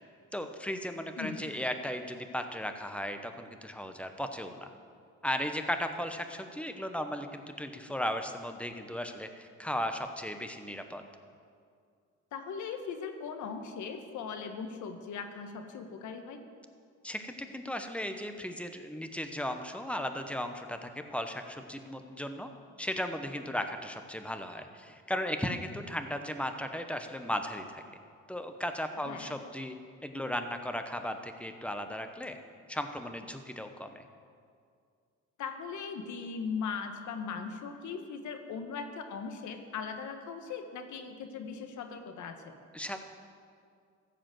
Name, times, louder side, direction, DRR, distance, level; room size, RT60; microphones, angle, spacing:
voice 1, 0.3-4.7 5.2-11.0 17.0-22.5 22.8-27.8 28.3-29.8 30.0-32.4 32.7-34.1 42.7-43.0, equal, 5° left, 7 dB, 0.9 m, -36 dB
voice 2, 1.2-1.5 12.3-16.4 29.0-29.3 35.4-42.5, left 5 dB, 75° left, 6 dB, 1.2 m, -39 dB
14.5 x 5.0 x 7.7 m, 2.2 s
cardioid pair, 90°, 30 cm